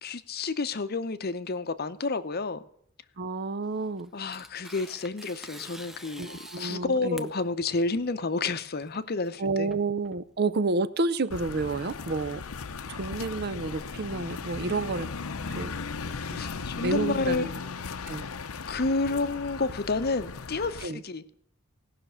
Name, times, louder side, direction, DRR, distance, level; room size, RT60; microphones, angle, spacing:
voice 1, 0.0-2.6 4.1-9.7 16.4-17.5 18.7-21.2, left 3 dB, 45° left, 0.7 m, -30 dB
voice 2, 3.2-4.1 6.2-7.3 9.4-12.4 12.9-15.1 15.5-15.7 16.3-16.4 16.8-17.5 18.1-18.2 20.8-21.0, right 3 dB, 45° right, 0.5 m, -30 dB
Tearing, 3.6-10.4, equal, ahead, 0.6 m, -47 dB
sound 1, 11.3-20.9, left 4 dB, 80° left, 0.7 m, -37 dB
17.5 x 6.0 x 7.9 m
head